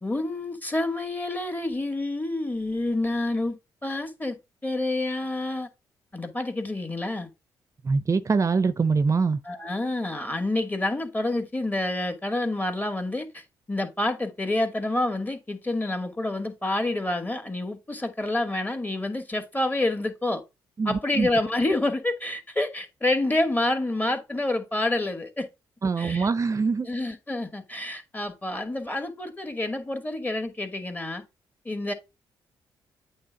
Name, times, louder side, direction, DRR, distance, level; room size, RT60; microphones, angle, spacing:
voice 1, 0.0-4.4 4.6-5.7 6.1-7.3 9.4-20.4 20.9-25.5 26.0-26.3 26.8-31.2 31.7-31.9, left 2 dB, 20° left, 2.1 m, -28 dB
voice 2, 7.8-9.4 20.8-21.3 25.8-26.9, right 4 dB, 35° right, 0.6 m, -23 dB
8.6 x 3.5 x 5.2 m
supercardioid pair, 55°, 9 cm